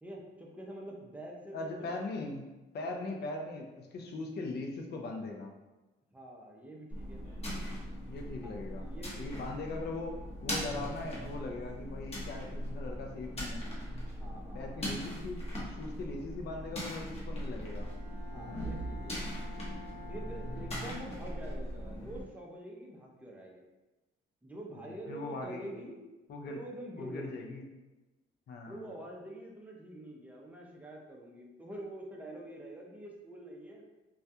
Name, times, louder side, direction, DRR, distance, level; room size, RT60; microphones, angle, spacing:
voice 1, 0.0-1.7 2.9-3.0 6.1-7.2 8.4-9.4 14.1-15.1 16.5-16.6 18.3-19.2 20.1-23.6 24.4-26.0 26.5-27.5 28.7-33.8, right 1 dB, 5° right, -2 dB, 0.5 m, -46 dB
voice 2, 1.5-2.4 2.7-5.5 8.1-8.8 9.2-10.2 10.4-13.7 14.5-17.9 18.5-18.7 20.4-20.5 24.9-25.7 26.3-26.6 27.0-27.7 28.5-28.8, left 3 dB, 55° left, 2 dB, 0.5 m, -40 dB
sound 1, 6.9-22.2, equal, 30° left, 0.8 m, -40 dB
Bowed string instrument, 17.5-22.1, left 1 dB, 50° right, 0.7 m, -52 dB
2.3 x 2.2 x 2.7 m, 1.1 s
cardioid pair, 90°, 20 cm